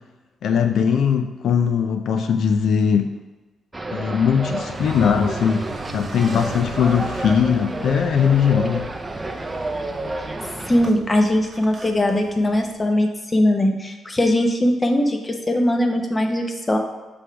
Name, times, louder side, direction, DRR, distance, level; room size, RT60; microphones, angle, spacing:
voice 1, 0.4-3.1 3.9-5.6 5.9-8.9, left 7 dB, 70° left, 6 dB, 0.5 m, -20 dB
sound 1, 3.7-10.9, right 2 dB, 15° right, 0.5 m, -30 dB
Car, 4.5-12.8, right 2 dB, 30° right, 0.9 m, -38 dB
voice 2, 10.7-16.8, left 1 dB, 20° left, 3 dB, 0.9 m, -20 dB
7.1 x 3.4 x 5.8 m, 1.2 s
cardioid pair, 120°, 0 cm